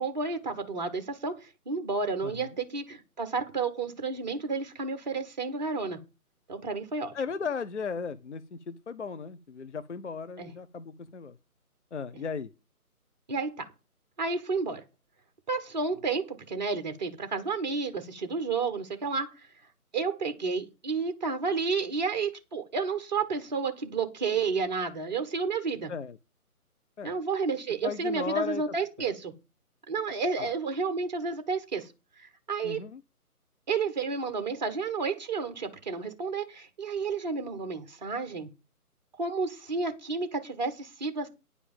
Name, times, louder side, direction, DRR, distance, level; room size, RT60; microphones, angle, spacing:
voice 1, 0.0-6.0 6.5-7.1 10.4-10.5 13.3-13.7 14.2-14.8 15.5-19.5 19.9-25.9 27.0-29.3 29.9-31.9 32.2-32.8 33.7-38.5 39.2-41.3, right 4 dB, 30° right, 1.2 m, -31 dB
voice 2, 7.1-11.4 11.9-12.5 25.9-26.2 27.0-27.2 27.8-28.6 29.0-29.1 30.4-30.5 32.6-33.0, left 5 dB, 50° left, 0.6 m, -35 dB
9.8 x 5.1 x 7.1 m
figure-of-eight pair, 150°, 45 cm